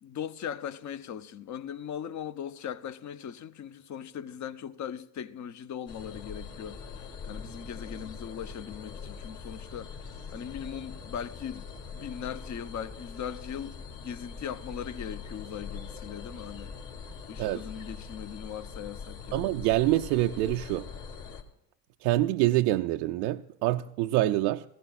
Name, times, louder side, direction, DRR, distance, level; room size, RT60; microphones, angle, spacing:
voice 1, 0.0-6.8 7.2-9.9 10.3-16.7 17.3-19.6, left 8 dB, 35° left, 0.8 m, -39 dB
sound 1, 5.9-21.4, left 5 dB, 50° left, 2.8 m, -42 dB
voice 2, 19.3-20.9 22.0-24.6, right 16 dB, 75° right, 0.6 m, -26 dB
18.5 x 15.5 x 2.4 m
hypercardioid pair, 85°, 48 cm